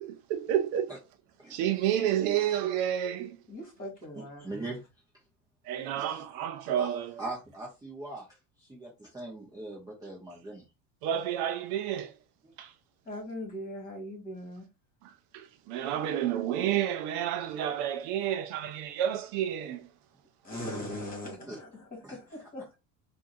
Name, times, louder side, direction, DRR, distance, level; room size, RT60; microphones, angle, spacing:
voice 1, 0.1-0.9 1.5-3.4 5.7-7.2 11.0-12.1 12.6-12.7 15.0-19.9, right 10 dB, 60° right, 0.6 m, -30 dB
voice 2, 3.5-4.6 13.1-14.7 20.4-22.8, left 1 dB, 20° left, 2.4 m, -40 dB
voice 3, 4.1-4.8 6.0-6.2 6.8-6.9 7.2-8.3 8.6-10.6 21.5-21.6 22.0-22.4, right 2 dB, 10° right, 1.0 m, -41 dB
4.5 x 2.7 x 2.6 m
supercardioid pair, 130°, 43 cm